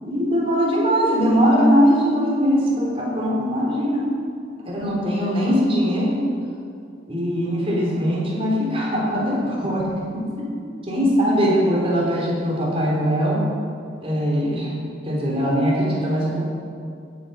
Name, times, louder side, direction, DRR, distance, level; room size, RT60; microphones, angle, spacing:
voice 1, 0.0-4.1 4.6-6.2 7.1-10.3 10.8-13.4 14.0-14.7 15.0-16.5, equal, 30° right, -4 dB, 3.7 m, -21 dB
16.0 x 8.7 x 5.8 m, 2.3 s
head